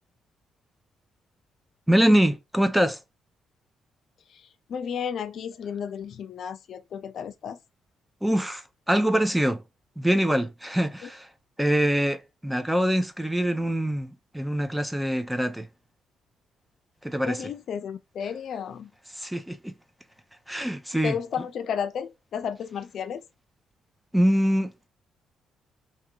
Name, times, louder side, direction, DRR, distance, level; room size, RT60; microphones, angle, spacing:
voice 1, 1.9-3.0 8.2-9.6 10.0-11.3 11.6-15.7 17.0-17.4 19.1-19.7 20.5-21.2 24.1-24.7, equal, 5° right, 0.7 m, -24 dB
voice 2, 4.3-7.6 11.0-11.1 17.3-18.9 21.0-23.3, left 7 dB, 65° left, 0.5 m, -33 dB
3.5 x 2.9 x 4.7 m
cardioid pair, 90°, 0 cm